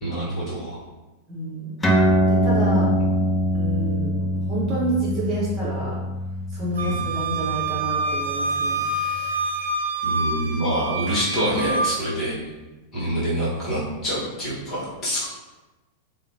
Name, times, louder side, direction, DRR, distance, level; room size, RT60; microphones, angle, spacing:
voice 1, 0.0-0.8 6.8-7.0 10.0-12.4 12.9-15.3, right 1 dB, 35° left, -8 dB, 1.3 m, -26 dB
voice 2, 1.3-1.7 2.3-2.9 3.5-6.0 6.5-8.8, right 1 dB, 30° right, -7 dB, 1.0 m, -28 dB
sound 1, 1.8-8.8, equal, 10° left, 0.4 m, -23 dB
Wind instrument woodwind instrument, 6.8-12.0, right 3 dB, 65° right, 0.3 m, -26 dB
2.9 x 2.2 x 2.7 m, 1.1 s
figure-of-eight pair, 90°, 0 cm